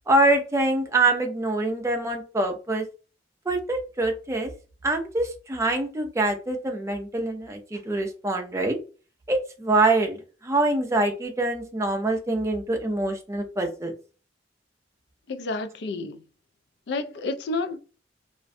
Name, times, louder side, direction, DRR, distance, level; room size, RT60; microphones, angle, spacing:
voice 1, 0.1-2.8 3.5-4.5 4.8-8.8 9.3-10.2 10.4-13.9, right 2 dB, 15° right, 0.4 m, -24 dB
voice 2, 15.3-16.2 16.9-17.8, left 3 dB, 60° left, 0.3 m, -30 dB
2.4 x 2.1 x 2.5 m
head